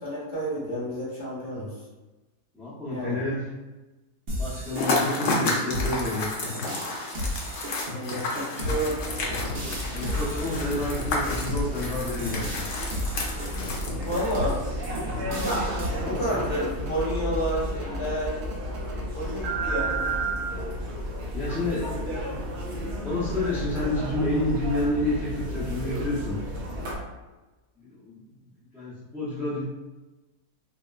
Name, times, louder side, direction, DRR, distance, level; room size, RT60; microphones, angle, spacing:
voice 1, 0.0-1.7 2.9-3.2 7.9-9.0 13.9-14.6 15.4-18.4 19.1-20.1, equal, 20° left, -8 dB, 1.1 m, -30 dB
voice 2, 2.5-3.5 4.4-6.3 8.6-8.8 9.9-12.6 14.6-15.0 15.9-16.4 21.3-21.9 23.0-26.4 27.8-28.4 28.7-29.6, left 1 dB, ahead, -11 dB, 0.4 m, -30 dB
sound 1, 4.3-15.9, left 1 dB, 50° right, 0.8 m, -34 dB
sound 2, 4.8-14.5, left 2 dB, 60° left, 0.8 m, -31 dB
sound 3, 9.0-27.0, equal, 80° right, 1.2 m, -32 dB
4.2 x 2.1 x 2.3 m, 1.1 s
omnidirectional pair, 1.6 m